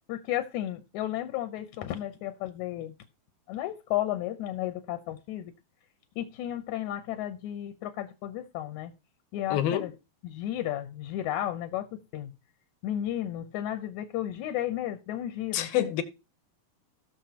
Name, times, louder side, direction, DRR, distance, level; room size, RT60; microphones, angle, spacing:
voice 1, 0.1-2.9 3.5-5.5 6.2-8.9 9.3-9.9 10.2-12.3 12.8-15.7, left 12 dB, 70° left, 1.9 m, -33 dB
voice 2, 9.5-9.9 15.5-16.0, left 11 dB, 90° left, 2.8 m, -27 dB
18.5 x 6.3 x 2.9 m
omnidirectional pair, 4.2 m